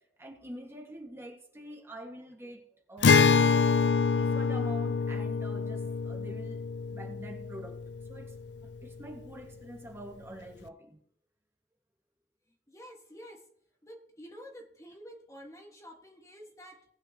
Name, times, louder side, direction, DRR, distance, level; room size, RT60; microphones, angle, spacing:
voice 1, 0.2-7.8 8.1-8.4 8.8-11.0, right 1 dB, 15° right, 1.6 m, -46 dB
Acoustic guitar, 3.0-8.5, left 5 dB, 80° left, 0.5 m, -26 dB
voice 2, 12.7-13.4 13.8-16.8, equal, 20° left, 1.6 m, -49 dB
19.5 x 9.0 x 2.9 m
head